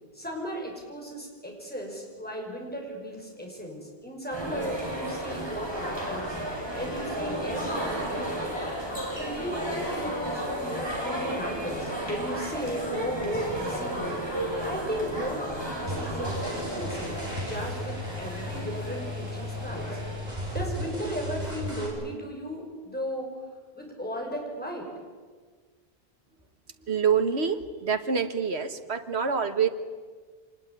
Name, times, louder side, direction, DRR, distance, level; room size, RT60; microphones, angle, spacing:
voice 1, 0.1-6.4 6.8-8.6 9.1-14.2 14.6-15.5 15.8-20.0 20.5-23.4 23.8-24.9, equal, 10° left, -1 dB, 6.4 m, -36 dB
sound 1, 4.3-21.1, equal, 25° right, 5.5 m, -33 dB
sound 2, 15.9-21.9, left 1 dB, 40° right, 6.9 m, -35 dB
voice 2, 26.9-29.7, right 6 dB, 85° right, 8 dB, 1.8 m, -26 dB
25.5 x 20.5 x 9.9 m, 1.5 s
omnidirectional pair, 1.1 m